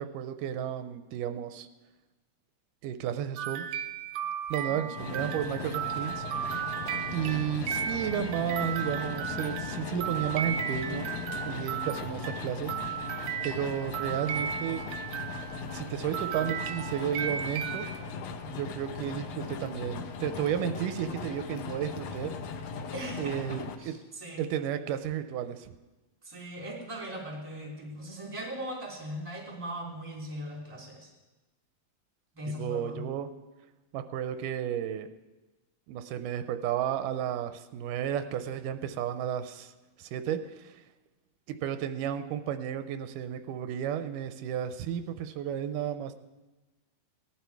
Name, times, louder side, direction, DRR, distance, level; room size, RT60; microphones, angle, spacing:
voice 1, 0.0-1.7 2.8-3.7 4.5-6.7 7.1-11.1 11.4-14.8 15.7-17.9 18.5-22.3 23.2-23.9 24.4-25.7 32.6-33.3 33.9-35.1 35.9-39.7 40.0-40.7 41.5-46.1, right 9 dB, 90° right, 9 dB, 2.2 m, -33 dB
sound 1, 3.4-15.9 16.1-17.9, right 8 dB, 70° right, 1.7 m, -35 dB
sound 2, 5.0-23.8, left 5 dB, 70° left, 1.7 m, -38 dB
voice 2, 22.9-24.5 26.2-31.1 32.3-33.0, equal, 10° right, -1 dB, 2.5 m, -39 dB
18.0 x 11.5 x 4.7 m, 1.2 s
omnidirectional pair, 3.8 m